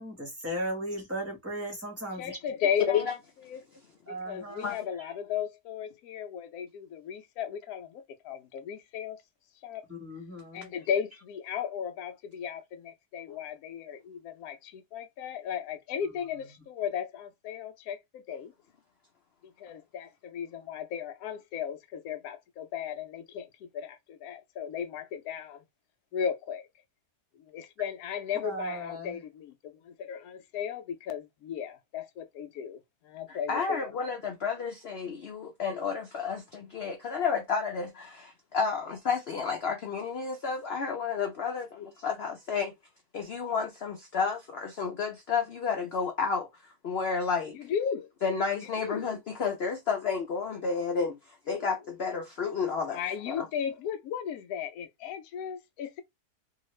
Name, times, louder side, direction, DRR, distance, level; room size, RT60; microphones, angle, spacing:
voice 1, 0.0-2.3 4.1-4.7 9.9-10.7 28.4-29.1, right 1 dB, 15° right, 0.7 m, -36 dB
voice 2, 2.1-3.1 3.5-3.6 4.1-9.2 9.6-9.8 10.5-18.5 19.4-25.6 26.1-26.7 27.4-33.9 47.5-48.1 48.8-49.1 52.9-56.0, left 8 dB, 70° left, 0.9 m, -35 dB
voice 3, 33.3-42.7 43.1-46.5 46.8-47.6 48.2-51.2 51.5-53.0 53.3-53.5, left 5 dB, 85° left, 0.5 m, -31 dB
2.8 x 2.4 x 3.0 m
omnidirectional pair, 1.8 m